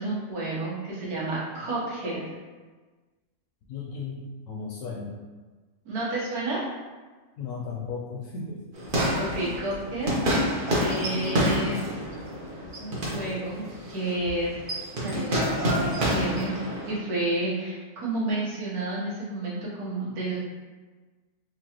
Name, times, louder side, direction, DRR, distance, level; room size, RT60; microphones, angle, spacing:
voice 1, 0.0-2.2 5.9-6.6 9.1-10.1 10.8-11.9 12.8-14.6 15.0-16.5 16.9-20.4, right 2 dB, 80° right, -7 dB, 1.6 m, -30 dB
voice 2, 3.7-5.1 7.4-8.6, left 4 dB, 70° left, -2 dB, 0.9 m, -35 dB
sound 1, 8.7-17.0, equal, 40° right, 0.9 m, -28 dB
4.5 x 2.5 x 2.9 m, 1.3 s
omnidirectional pair, 1.6 m